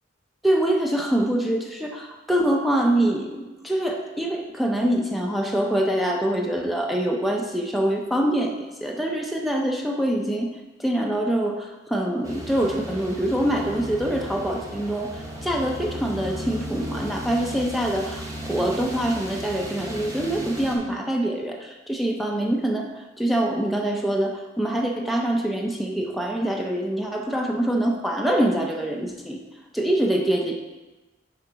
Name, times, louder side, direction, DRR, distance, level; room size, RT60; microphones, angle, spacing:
voice 1, 0.4-10.5 10.8-15.1 15.4-22.9 23.2-29.4 29.7-30.5, right 1 dB, ahead, 0 dB, 0.5 m, -24 dB
sound 1, 12.2-20.8, equal, 20° right, 1.0 m, -35 dB
6.7 x 5.0 x 4.6 m, 1.1 s
head